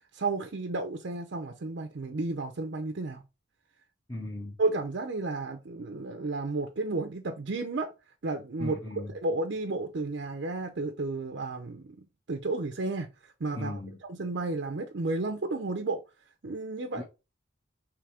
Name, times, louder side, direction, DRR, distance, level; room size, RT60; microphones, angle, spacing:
voice 1, 0.1-3.2 4.6-7.9 8.2-8.8 9.2-13.8 14.2-16.0 16.4-17.0, right 3 dB, 60° right, 0.5 m, -32 dB
voice 2, 4.1-4.6 8.6-9.1 13.5-14.0 17.0-17.1, left 1 dB, 20° left, 0.9 m, -37 dB
4.9 x 3.2 x 3.4 m
head